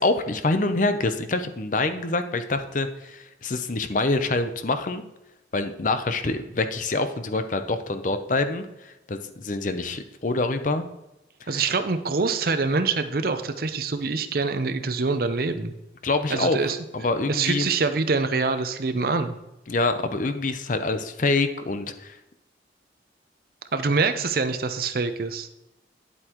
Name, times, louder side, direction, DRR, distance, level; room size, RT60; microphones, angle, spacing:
voice 1, 0.0-5.0 5.5-10.8 11.4-11.6 16.0-16.6 16.9-17.7 19.7-22.2, left 3 dB, 45° left, 9 dB, 0.6 m, -26 dB
voice 2, 11.5-15.7 16.3-16.8 17.3-19.3 23.7-25.5, right 4 dB, 55° right, 9 dB, 0.6 m, -25 dB
9.9 x 8.0 x 3.0 m, 0.95 s
head